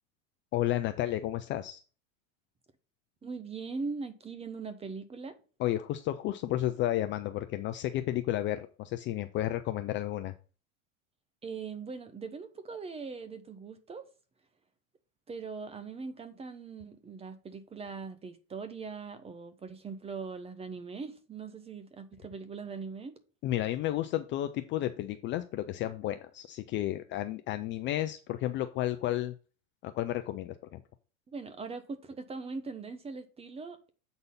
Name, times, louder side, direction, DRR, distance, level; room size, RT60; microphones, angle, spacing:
voice 1, 0.5-1.8 5.6-10.3 23.4-29.3 29.8-30.8, left 13 dB, 30° left, 0.4 m, -32 dB
voice 2, 3.2-5.4 11.4-14.0 15.3-23.1 31.3-33.9, right 4 dB, 15° right, 0.7 m, -41 dB
8.0 x 4.1 x 5.4 m
supercardioid pair, 135°, 41 cm